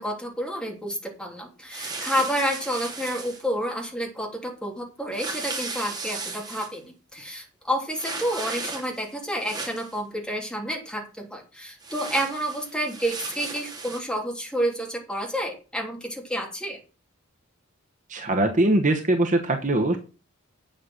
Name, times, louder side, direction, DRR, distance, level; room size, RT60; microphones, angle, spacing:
voice 1, 0.0-16.8, equal, 5° left, 1 dB, 3.1 m, -30 dB
sound 1, 1.7-3.4 5.1-6.7 7.9-9.0 9.3-10.0 11.8-14.0, right 3 dB, 20° right, 2.6 m, -35 dB
voice 2, 18.1-20.0, right 1 dB, 35° right, 5 dB, 1.2 m, -22 dB
9.0 x 7.6 x 6.4 m, 0.34 s
head